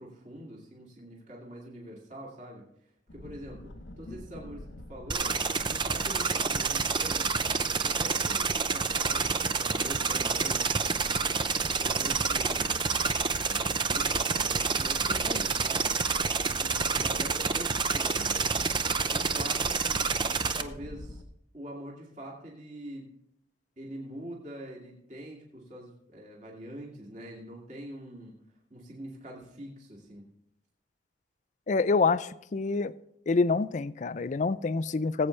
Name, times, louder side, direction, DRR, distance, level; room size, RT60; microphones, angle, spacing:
voice 1, 0.0-2.7 3.1-3.7 4.0-5.4 5.6-7.4 7.8-10.9 11.6-12.7 13.4-15.9 16.4-18.6 19.1-20.1 20.4-21.2 21.5-23.1 23.8-28.3 28.7-30.2, right 1 dB, 40° right, 2.5 m, -44 dB
sound 1, 3.1-21.2, left 1 dB, 80° left, 1.0 m, -44 dB
sound 2, 5.1-20.6, right 5 dB, 25° right, 0.5 m, -28 dB
voice 2, 31.7-32.9 33.3-35.3, left 4 dB, 40° left, 0.4 m, -26 dB
19.5 x 8.3 x 3.3 m
head